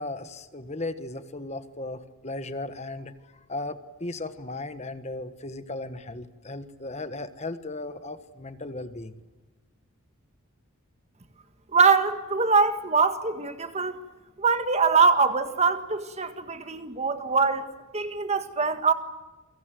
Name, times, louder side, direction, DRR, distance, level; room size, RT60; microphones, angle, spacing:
voice 1, 0.0-3.1 3.5-9.1, left 2 dB, 30° left, 1.4 m, -36 dB
voice 2, 11.7-14.0 14.4-17.7 17.9-18.9, right 4 dB, 30° right, 1.7 m, -23 dB
29.0 x 24.0 x 7.7 m
head